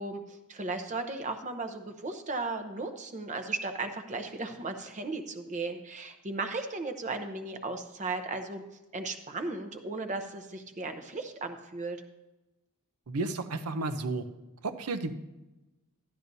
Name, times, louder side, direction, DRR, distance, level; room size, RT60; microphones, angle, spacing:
voice 1, 0.0-8.6 8.9-12.0, right 3 dB, 35° right, 6 dB, 0.8 m, -36 dB
voice 2, 13.1-14.2 14.6-15.1, right 3 dB, 80° right, 10 dB, 0.7 m, -32 dB
12.0 x 11.5 x 2.7 m, 1.0 s
head